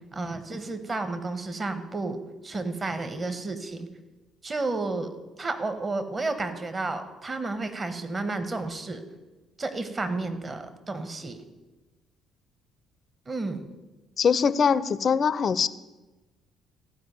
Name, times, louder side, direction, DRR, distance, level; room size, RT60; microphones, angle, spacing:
voice 1, 0.1-3.9 4.4-5.1 5.4-9.0 9.6-11.5 13.3-13.7, right 3 dB, 30° right, 9 dB, 1.4 m, -31 dB
voice 2, 14.2-15.7, left 6 dB, 50° left, 17 dB, 0.5 m, -22 dB
14.5 x 5.0 x 9.3 m, 1.2 s
hypercardioid pair, 50°, 0 cm